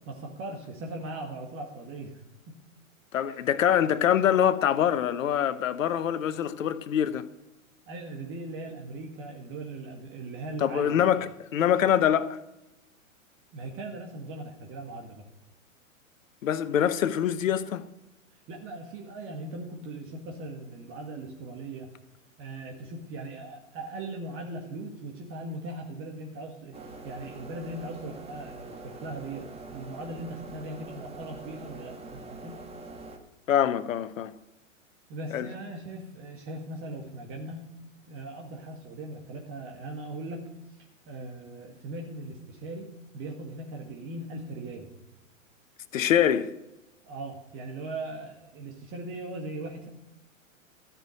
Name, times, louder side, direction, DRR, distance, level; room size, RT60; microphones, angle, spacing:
voice 1, 0.1-2.6 3.3-3.4 7.9-11.1 13.5-15.2 18.5-21.9 22.4-26.8 27.0-32.6 35.1-37.7 38.1-40.5 41.1-44.9 47.0-49.9, right 2 dB, 30° right, 2.0 m, -39 dB
voice 2, 3.1-7.3 10.6-12.4 16.4-17.8 33.5-34.3 35.3-35.5 45.9-46.5, left 9 dB, 70° left, 1.0 m, -24 dB
sound 1, 26.7-33.2, right 2 dB, 15° right, 1.6 m, -44 dB
13.0 x 6.2 x 9.1 m
hypercardioid pair, 110°, 40 cm